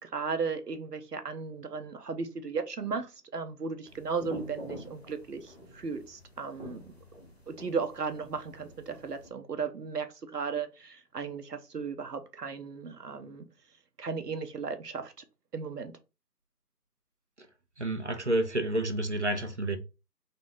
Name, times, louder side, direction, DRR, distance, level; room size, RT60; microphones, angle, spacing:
voice 1, 0.0-6.9 7.5-13.4 14.0-15.2 15.5-15.9, right 5 dB, 75° right, 0.9 m, -35 dB
sound 1, 3.9-9.3, left 1 dB, 40° left, 0.8 m, -47 dB
voice 2, 17.8-19.8, right 1 dB, 45° right, 0.6 m, -29 dB
4.0 x 2.6 x 3.5 m
figure-of-eight pair, 175°, 48 cm